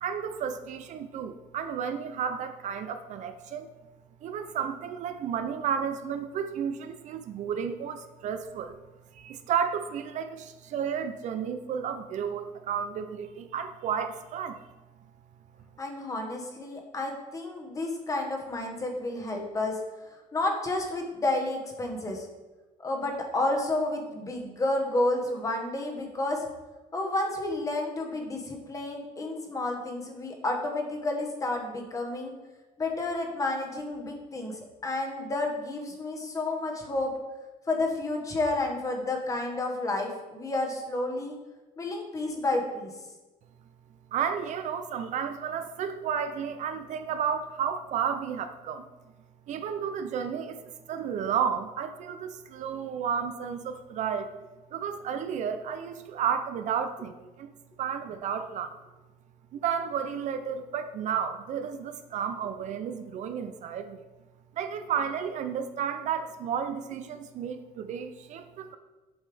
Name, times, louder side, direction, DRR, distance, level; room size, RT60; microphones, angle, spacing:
voice 1, 0.0-3.7 4.2-8.8 9.1-14.6 44.1-48.9 49.5-54.3 54.7-57.5 57.8-58.8 59.5-64.0 64.5-68.7, right 7 dB, 55° right, 8 dB, 0.5 m, -32 dB
voice 2, 15.8-19.8 20.3-22.3 22.8-26.4 26.9-32.3 32.8-37.2 37.7-41.3 41.8-43.0, left 2 dB, 25° left, 2 dB, 1.1 m, -30 dB
7.9 x 5.5 x 3.4 m, 1.1 s
cardioid pair, 140°, 14 cm